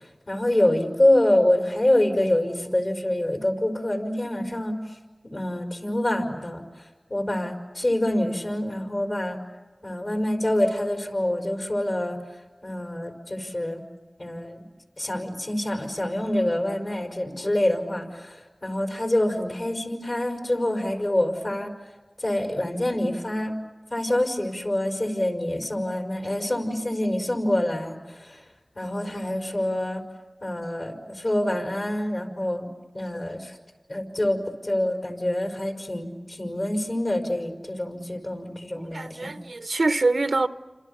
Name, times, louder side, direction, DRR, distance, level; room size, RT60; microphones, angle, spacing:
voice 1, 0.3-4.7 5.2-6.6 7.1-9.4 9.8-12.2 12.6-13.8 14.2-14.6 15.0-18.4 18.6-21.7 22.2-23.5 23.9-28.0 28.7-30.0 30.4-32.7 32.9-33.5 33.9-34.4 34.6-39.4, left 1 dB, 55° left, 5.0 m, -26 dB
voice 2, 38.9-40.5, right 3 dB, 90° right, 0.9 m, -24 dB
30.0 x 27.0 x 7.1 m
wide cardioid pair, 45°, 0 cm